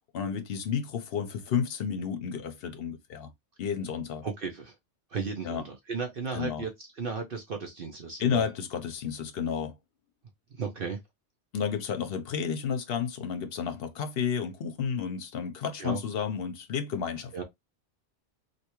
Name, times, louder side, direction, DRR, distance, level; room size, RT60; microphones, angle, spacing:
voice 1, 0.1-3.3 3.6-4.3 5.4-5.6 6.3-6.7 8.2-9.7 11.5-17.3, left 7 dB, 60° left, 0.8 m, -31 dB
voice 2, 4.2-4.7 5.1-6.7 7.0-8.4 10.5-11.0 15.8-16.0 17.3-17.4, right 5 dB, 55° right, 0.9 m, -34 dB
3.4 x 2.7 x 2.9 m
omnidirectional pair, 1.2 m